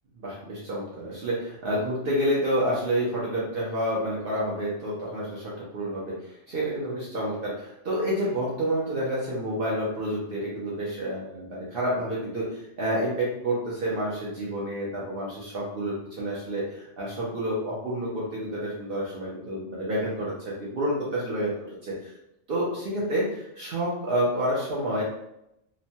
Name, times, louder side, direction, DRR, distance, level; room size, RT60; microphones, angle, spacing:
voice 1, 0.2-22.1 22.5-25.0, equal, 60° right, -6 dB, 0.8 m, -29 dB
2.9 x 2.2 x 2.7 m, 0.82 s
omnidirectional pair, 1.2 m